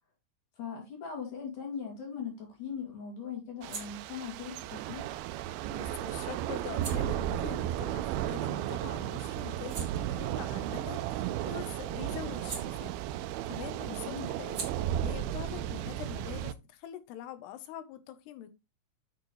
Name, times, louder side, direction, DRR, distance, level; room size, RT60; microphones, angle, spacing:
voice 1, 0.6-5.1 13.9-14.3, left 7 dB, 55° left, 3.6 m, -40 dB
sound 1, 1.9-8.8 9.2-13.4 13.7-17.1, right 4 dB, 65° right, 0.8 m, -49 dB
Thunder / Rain, 3.6-16.5, right 12 dB, 80° right, 2.3 m, -34 dB
voice 2, 5.7-18.5, left 11 dB, 85° left, 3.0 m, -44 dB
8.2 x 7.2 x 3.0 m
omnidirectional pair, 4.6 m